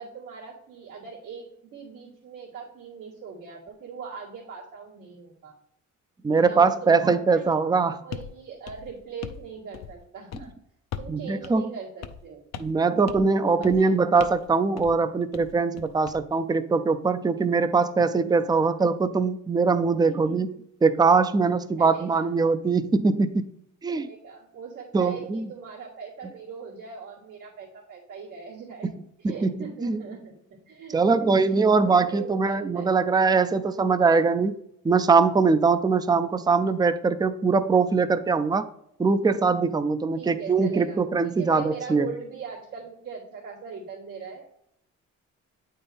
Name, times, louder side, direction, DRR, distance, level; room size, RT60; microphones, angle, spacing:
voice 1, 0.0-1.5 1.7-5.5 6.3-7.5 8.0-10.5 11.0-12.4 12.9-13.9 18.4-18.7 20.0-20.6 21.7-22.3 23.9-28.9 29.2-30.4 30.7-33.0 40.1-44.5, right 6 dB, 85° right, -8 dB, 2.1 m, -40 dB
voice 2, 6.2-8.0 11.1-11.7 12.6-20.5 20.8-23.5 23.8-24.1 24.9-25.4 29.2-29.5 29.8-30.0 30.9-34.6 34.8-38.6 39.0-42.1, right 4 dB, 15° right, 11 dB, 0.4 m, -22 dB
sound 1, 8.1-8.3 8.7-9.5 9.7-10.0 10.3-10.5 10.9-11.2 11.4-11.5 12.0-12.3 12.5-12.8 13.1-13.3 13.6-13.9 14.2-14.5 14.8-15.0 15.3-16.2, left 9 dB, 60° left, 0.6 m, -39 dB
8.6 x 4.4 x 3.4 m, 0.75 s
cardioid pair, 90°, 30 cm